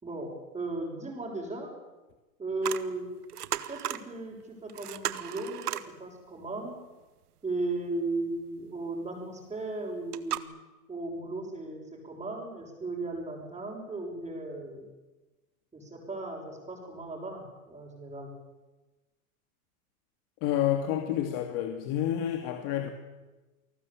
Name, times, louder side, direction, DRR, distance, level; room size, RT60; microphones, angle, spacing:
voice 1, 0.0-1.7 2.4-3.1 3.7-6.8 7.4-10.5 10.9-14.9 15.7-18.3, right 2 dB, 10° right, -5 dB, 6.6 m, -36 dB
sound 1, 2.6-2.9 3.2-4.1 4.4-4.5 4.7-5.9 9.6-9.7 10.1-10.4, right 11 dB, 85° right, 1.7 m, -34 dB
voice 2, 20.4-22.9, left 11 dB, 45° left, 6 dB, 2.6 m, -29 dB
28.5 x 19.0 x 8.8 m, 1.2 s
hypercardioid pair, 120°, 45 cm